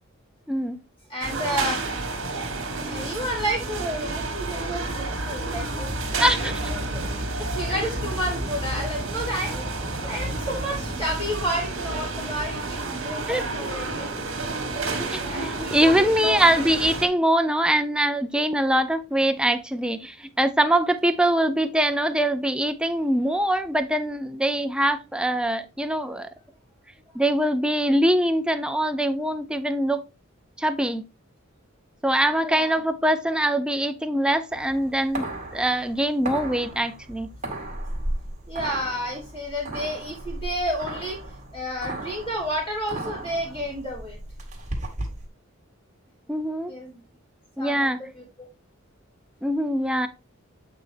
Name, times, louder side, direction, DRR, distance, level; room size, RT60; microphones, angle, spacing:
voice 1, 0.5-0.8 6.2-6.5 13.3-13.4 15.1-26.3 27.1-30.0 30.6-31.0 32.0-35.3 35.5-37.3 46.3-46.7 47.6-48.0 49.4-50.1, right 1 dB, 5° right, 0.5 m, -23 dB
voice 2, 1.1-1.8 2.8-14.1 14.7-14.8 15.3-16.4 32.4-32.8 38.5-41.2 41.5-44.2 46.7-47.0 47.6-48.5, equal, 25° left, 2.8 m, -31 dB
sound 1, 1.2-17.1, right 2 dB, 65° right, 1.8 m, -30 dB
sound 2, 34.5-45.3, right 1 dB, 35° right, 1.9 m, -35 dB
8.3 x 4.1 x 3.4 m
head